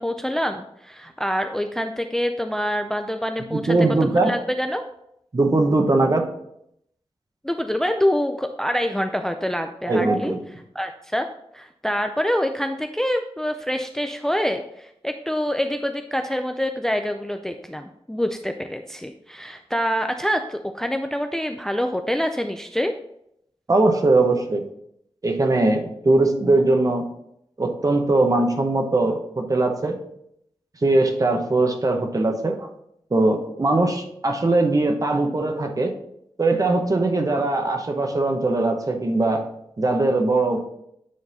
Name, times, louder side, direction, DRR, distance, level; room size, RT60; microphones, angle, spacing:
voice 1, 0.0-3.7 4.2-4.8 7.4-10.3 10.7-11.3 11.5-23.0, equal, 5° left, 6 dB, 0.4 m, -26 dB
voice 2, 3.5-4.3 5.3-6.3 9.9-10.4 23.7-24.6 25.2-27.1 27.6-30.0 30.8-32.7 33.1-36.0 36.4-39.5 39.8-40.7, right 2 dB, 35° right, 4 dB, 0.9 m, -20 dB
9.5 x 3.9 x 4.0 m, 0.75 s
wide cardioid pair, 105°, 10 cm